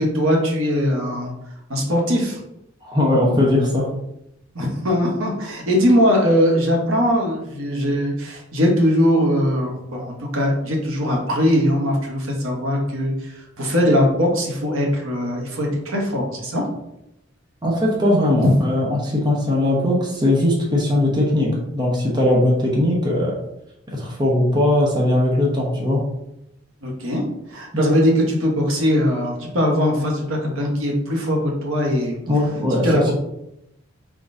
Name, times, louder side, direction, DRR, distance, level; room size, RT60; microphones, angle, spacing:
voice 1, 0.0-1.3 1.7-2.4 4.5-16.6 18.4-18.6 26.8-27.2 27.5-32.2 32.8-33.1, equal, 80° right, 0 dB, 1.1 m, -20 dB
voice 2, 2.8-3.9 17.6-23.3 23.9-26.0 27.7-27.8 32.3-33.1, left 1 dB, 20° right, -3 dB, 0.9 m, -19 dB
4.6 x 3.6 x 2.6 m, 0.84 s
head